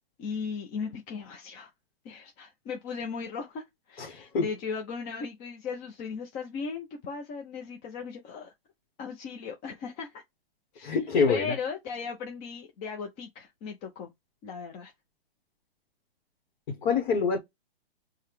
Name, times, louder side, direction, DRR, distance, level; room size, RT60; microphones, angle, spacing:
voice 1, 0.2-1.7 2.0-8.5 9.0-10.2 10.7-10.9 11.3-14.1 14.4-14.9, left 5 dB, 25° left, 0.7 m, -37 dB
voice 2, 4.0-4.4 10.8-11.5 16.8-17.4, left 5 dB, 55° left, 1.3 m, -25 dB
5.4 x 2.2 x 3.2 m
hypercardioid pair, 135°, 30 cm